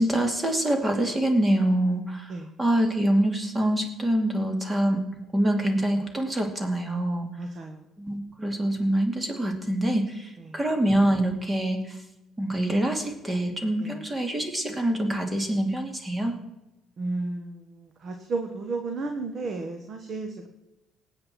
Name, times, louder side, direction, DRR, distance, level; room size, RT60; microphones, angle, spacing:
voice 1, 0.0-5.0 5.3-7.3 8.0-12.0 12.4-16.4, right 1 dB, 20° right, 4 dB, 2.6 m, -25 dB
voice 2, 7.4-7.8 13.8-14.0 17.0-20.5, right 3 dB, 50° right, 5 dB, 1.5 m, -33 dB
19.0 x 8.1 x 4.5 m, 0.96 s
cardioid pair, 85°, 0 cm